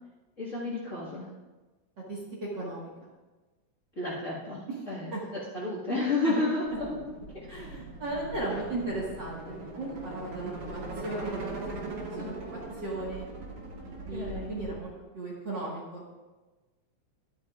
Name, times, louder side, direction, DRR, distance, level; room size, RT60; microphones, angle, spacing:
voice 1, 0.4-1.3 3.9-7.5 12.1-12.3 14.1-14.6, left 2 dB, 30° left, -7 dB, 1.8 m, -32 dB
voice 2, 2.5-3.1 5.1-5.2 6.2-6.4 6.7-6.8 7.5-13.3 13.8-16.1, right 2 dB, 40° right, -5 dB, 2.1 m, -36 dB
sound 1, 6.6-14.8, right 2 dB, 70° right, 2.8 m, -40 dB
12.0 x 11.5 x 2.5 m, 1.2 s
omnidirectional pair, 3.4 m